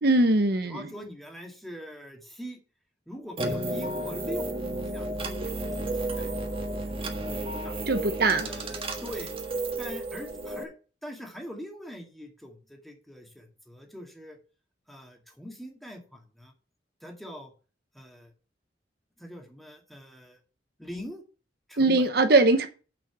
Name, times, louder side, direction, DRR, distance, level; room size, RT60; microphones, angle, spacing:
voice 1, 0.0-0.9 7.9-8.5 21.8-22.7, right 2 dB, 60° right, 8 dB, 1.0 m, -21 dB
voice 2, 0.6-2.6 3.1-6.5 6.9-7.8 8.4-9.3 9.8-10.7 11.0-14.4 14.9-16.5 17.0-17.5 17.9-18.3 19.2-20.4 20.8-21.2 21.7-22.1, equal, ahead, 1 dB, 2.2 m, -43 dB
sound 1, 3.4-10.6, right 1 dB, 30° right, 1.5 m, -32 dB
7.3 x 6.4 x 6.9 m, 0.35 s
head